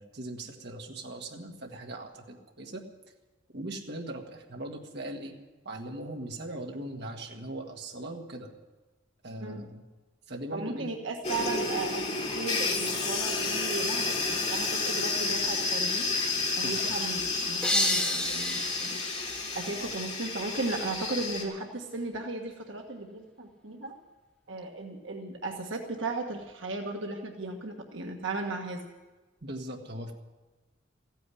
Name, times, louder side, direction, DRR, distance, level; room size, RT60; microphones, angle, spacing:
voice 1, 0.0-2.8 3.5-5.3 5.7-8.5 9.2-9.8 10.3-10.9 16.6-16.9 19.8-19.9 29.4-30.1, right 1 dB, 60° right, 1 dB, 1.9 m, -40 dB
voice 2, 9.4-9.8 10.5-12.0 12.3-16.0 16.6-19.0 19.5-23.9 24.5-28.8, right 3 dB, 85° right, 2 dB, 1.5 m, -36 dB
sound 1, 11.2-21.4, left 3 dB, 35° left, 3.0 m, -31 dB
sound 2, 17.6-20.4, left 1 dB, 5° left, 2.1 m, -31 dB
15.0 x 9.2 x 9.9 m, 1.2 s
head